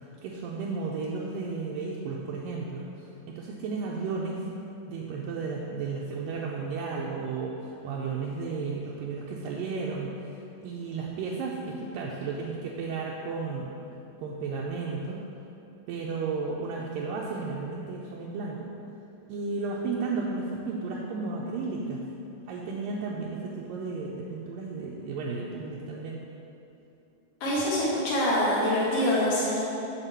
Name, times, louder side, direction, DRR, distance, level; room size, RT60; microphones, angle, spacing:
voice 1, 0.2-4.5 4.9-10.4 10.6-13.7 14.2-15.2 15.9-18.7 19.3-22.1 22.5-26.2, right 4 dB, 80° right, -3 dB, 2.2 m, -33 dB
voice 2, 27.4-29.6, left 1 dB, 50° left, -7 dB, 2.6 m, -25 dB
7.4 x 4.6 x 6.8 m, 2.8 s
omnidirectional pair, 4.2 m